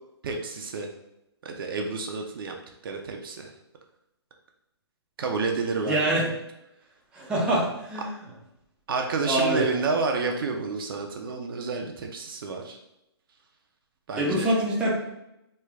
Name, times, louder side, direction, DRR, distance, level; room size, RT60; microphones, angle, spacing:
voice 1, 0.2-0.9 1.4-2.5 2.8-3.5 5.2-6.2 8.9-12.8 14.1-14.5, right 4 dB, 55° right, 3 dB, 0.5 m, -29 dB
voice 2, 5.9-6.3 7.1-8.1 9.2-9.7 14.2-14.9, right 1 dB, 5° right, -5 dB, 0.6 m, -24 dB
3.2 x 2.4 x 3.4 m, 0.86 s
hypercardioid pair, 150°, 14 cm